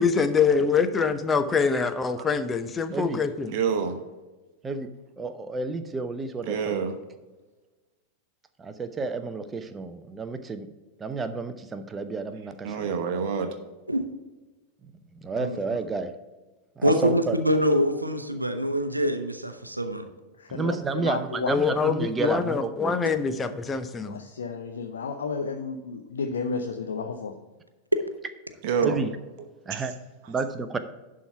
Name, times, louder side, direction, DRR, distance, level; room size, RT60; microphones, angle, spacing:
voice 1, 0.0-3.5 21.5-24.1, left 5 dB, 15° left, 10 dB, 0.7 m, -24 dB
voice 2, 3.5-3.9 6.5-6.9 12.6-13.5 28.6-29.0, right 6 dB, 45° right, 6 dB, 1.0 m, -26 dB
voice 3, 5.2-6.8 8.6-10.7 11.0-12.9 15.2-16.1 16.8-17.4 20.5-23.0 28.8-29.1 29.7-29.9 30.3-30.8, right 3 dB, 15° right, 10 dB, 0.7 m, -31 dB
voice 4, 16.8-20.1, equal, 85° right, 7 dB, 0.7 m, -24 dB
voice 5, 20.4-20.8 21.0-21.5 24.0-27.4, left 4 dB, 65° left, 4 dB, 0.6 m, -32 dB
11.0 x 3.8 x 5.6 m, 1.2 s
figure-of-eight pair, 90°, 0 cm